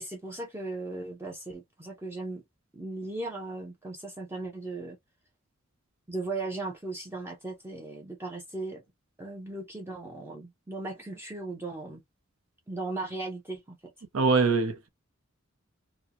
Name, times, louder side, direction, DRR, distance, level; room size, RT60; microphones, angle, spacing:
voice 1, 0.0-2.4 2.7-5.0 6.1-8.8 9.2-12.0 12.7-13.9, right 2 dB, 10° right, 0.5 m, -37 dB
voice 2, 14.1-14.9, right 4 dB, 75° right, 0.7 m, -23 dB
2.8 x 2.0 x 2.5 m
head